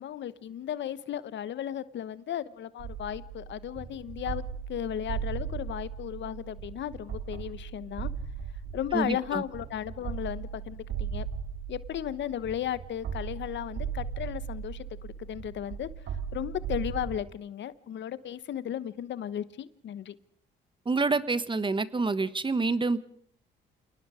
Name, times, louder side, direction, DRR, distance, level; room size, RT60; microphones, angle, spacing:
voice 1, 0.0-8.1 8.7-11.3 11.7-14.9 15.3-15.9 16.3-20.1, left 10 dB, 65° left, 17 dB, 1.0 m, -35 dB
sound 1, 2.8-17.2, right 7 dB, 70° right, 3.2 m, -38 dB
voice 2, 8.9-9.4 20.8-23.0, right 3 dB, 25° right, 16 dB, 1.2 m, -27 dB
28.5 x 19.0 x 5.0 m, 0.64 s
cardioid pair, 90°, 20 cm